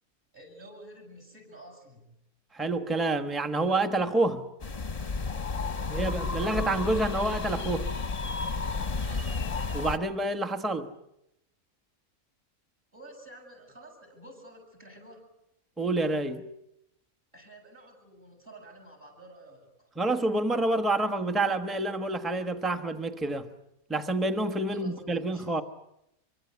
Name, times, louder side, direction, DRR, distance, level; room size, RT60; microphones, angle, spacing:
voice 1, 0.3-2.2 5.8-6.2 9.0-9.4 12.9-15.2 17.3-19.9 24.7-25.5, right 1 dB, 40° right, 7.9 m, -50 dB
voice 2, 2.5-4.4 5.9-7.9 9.7-10.9 15.8-16.4 20.0-23.5 23.9-25.6, right 2 dB, ahead, 1.1 m, -28 dB
sound 1, 4.6-10.0, left 4 dB, 30° left, 1.1 m, -32 dB
25.5 x 24.0 x 8.2 m
omnidirectional pair, 1.5 m